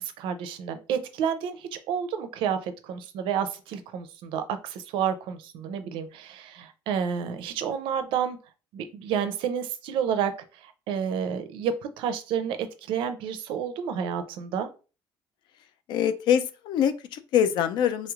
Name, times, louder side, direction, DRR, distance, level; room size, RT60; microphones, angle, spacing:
voice 1, 0.0-8.4 8.7-10.3 10.6-14.7, right 8 dB, 80° right, 10 dB, 0.5 m, -30 dB
voice 2, 15.9-18.1, left 9 dB, 60° left, 11 dB, 0.3 m, -24 dB
3.1 x 3.1 x 2.4 m, 0.34 s
cardioid pair, 170°, 9 cm